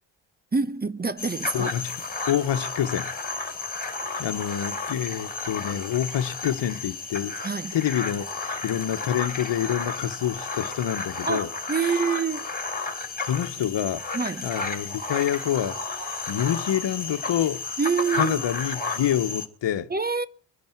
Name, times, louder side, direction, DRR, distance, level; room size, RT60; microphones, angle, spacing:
voice 1, 0.5-1.7 7.4-7.7 11.3-12.5 14.1-14.5 17.8-18.4 19.9-20.3, right 5 dB, 20° right, 0.9 m, -26 dB
sound 1, 1.2-19.5, left 3 dB, 20° left, 4.4 m, -32 dB
voice 2, 1.5-2.0 2.3-3.1 4.2-11.5 11.8-12.0 13.2-14.1 14.4-16.0 16.3-17.6 18.1-19.9, left 10 dB, 70° left, 1.4 m, -27 dB
23.5 x 10.5 x 4.7 m
cardioid pair, 70°, 45 cm